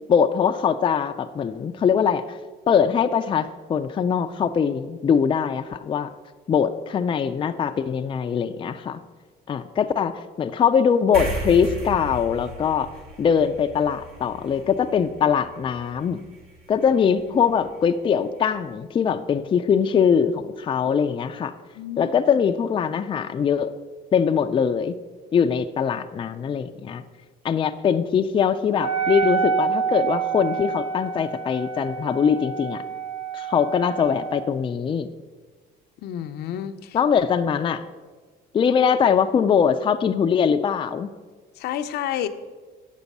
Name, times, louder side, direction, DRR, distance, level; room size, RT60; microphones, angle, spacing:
voice 1, 0.1-2.4 2.7-6.1 6.5-9.0 9.5-12.9 13.2-16.2 16.7-21.5 22.0-23.7 24.1-25.0 25.3-27.0 27.4-32.8 33.3-35.1 36.9-37.8 38.5-41.1, left 7 dB, 30° left, 7 dB, 0.4 m, -22 dB
sound 1, 11.1-17.9, right 2 dB, 65° right, 2.3 m, -37 dB
voice 2, 21.8-22.1 36.0-37.0 41.6-42.3, left 10 dB, 75° left, 9 dB, 0.6 m, -30 dB
Wind instrument woodwind instrument, 28.7-34.5, right 7 dB, 35° right, 0.8 m, -27 dB
8.2 x 6.7 x 5.3 m, 1.4 s
cardioid pair, 110°, 17 cm